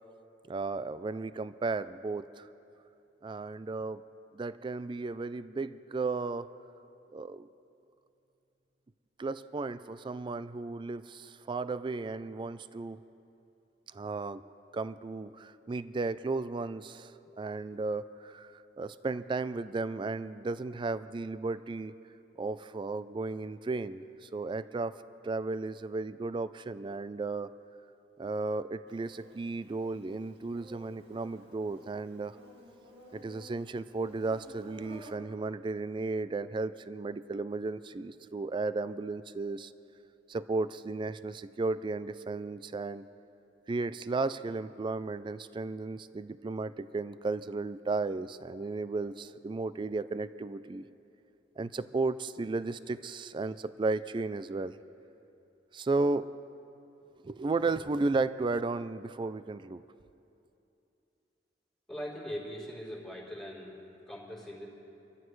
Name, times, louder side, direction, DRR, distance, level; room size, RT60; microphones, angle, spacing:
voice 1, 0.5-2.5 3.2-4.0 4.3-6.5 7.1-7.5 9.2-13.0 13.9-14.4 14.7-21.9 22.4-27.5 28.2-32.4 33.1-39.7 40.3-43.1 43.7-50.9 51.6-54.8 55.7-56.4 57.2-59.8, right 3 dB, 25° right, 14 dB, 0.3 m, -34 dB
Insect, 28.9-35.2, equal, 65° right, 2.2 m, -54 dB
voice 2, 61.9-63.8 64.1-64.7, equal, 5° left, -7 dB, 3.5 m, -41 dB
26.5 x 14.0 x 3.2 m, 2.8 s
head